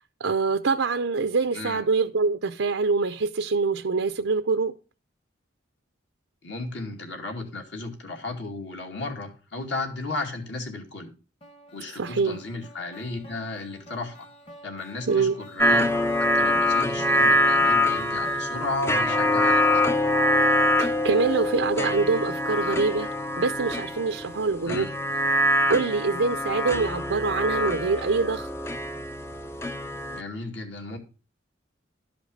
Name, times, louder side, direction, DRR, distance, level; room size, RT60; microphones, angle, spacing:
voice 1, 0.2-4.7 11.9-12.4 15.1-15.4 20.8-23.1 23.4-24.9 25.7-28.5, right 4 dB, 75° right, 0.6 m, -25 dB
voice 2, 6.4-11.1 11.7-14.3 14.6-15.9 16.2-19.9 24.6-24.9 30.1-31.0, left 2 dB, 60° left, 2.4 m, -34 dB
sound 1, 11.4-18.8, equal, 30° left, 1.4 m, -47 dB
sound 2, 15.6-30.2, left 1 dB, 15° left, 0.5 m, -24 dB
12.0 x 5.2 x 6.4 m
head